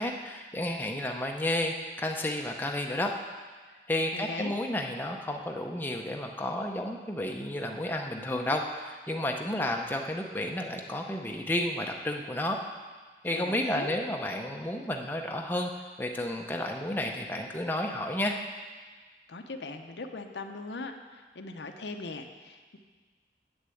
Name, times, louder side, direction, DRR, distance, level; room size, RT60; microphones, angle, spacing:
voice 1, 0.0-3.2 3.9-12.6 13.2-15.7 16.0-18.4, left 1 dB, 10° left, 2 dB, 0.6 m, -31 dB
voice 2, 4.1-4.5 13.2-13.9 19.3-22.8, left 3 dB, 85° left, 5 dB, 0.8 m, -40 dB
8.0 x 6.7 x 7.7 m, 1.4 s
head